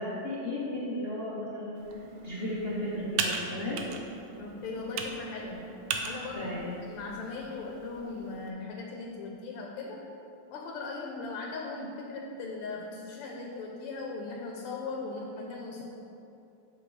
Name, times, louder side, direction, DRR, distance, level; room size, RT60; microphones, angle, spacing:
voice 1, 0.0-3.8 6.4-6.8, left 1 dB, 60° left, -8 dB, 0.6 m, -35 dB
Computer keyboard, 1.8-8.5, right 5 dB, 75° right, 1.3 m, -38 dB
voice 2, 4.4-5.7 6.0-6.5 6.9-10.0 10.5-15.8, left 3 dB, 85° left, 0 dB, 1.6 m, -38 dB
7.9 x 5.8 x 3.2 m, 2.9 s
omnidirectional pair, 2.4 m